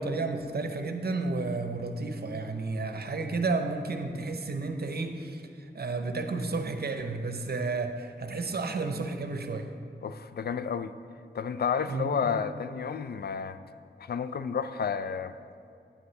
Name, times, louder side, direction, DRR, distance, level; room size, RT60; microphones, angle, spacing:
voice 1, 0.0-9.7 11.9-12.3, right 3 dB, 55° right, 6 dB, 0.7 m, -32 dB
voice 2, 10.0-10.9 11.3-13.6 14.0-15.3, left 6 dB, 60° left, 11 dB, 0.4 m, -31 dB
9.5 x 8.9 x 3.2 m, 2.5 s
wide cardioid pair, 90°, 19 cm